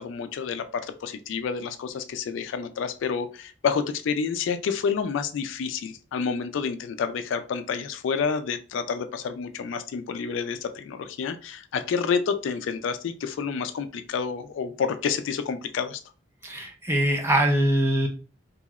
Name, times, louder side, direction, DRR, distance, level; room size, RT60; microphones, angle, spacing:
voice 1, 0.0-16.0, left 6 dB, 70° left, 9 dB, 0.3 m, -29 dB
voice 2, 16.4-18.1, right 1 dB, 10° right, 2 dB, 0.5 m, -23 dB
3.0 x 2.7 x 2.4 m, 0.36 s
head